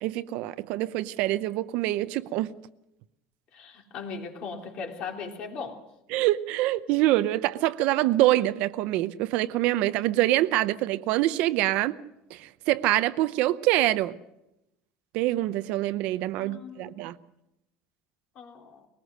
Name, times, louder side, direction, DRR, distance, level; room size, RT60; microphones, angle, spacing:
voice 1, 0.0-2.5 6.1-12.0 12.3-14.1 15.1-17.2, right 16 dB, 55° right, 0.7 m, -25 dB
voice 2, 3.5-5.8 16.4-17.0 18.3-18.9, left 5 dB, 40° left, 3.2 m, -38 dB
22.0 x 19.0 x 6.5 m
cardioid pair, 165°, 3 cm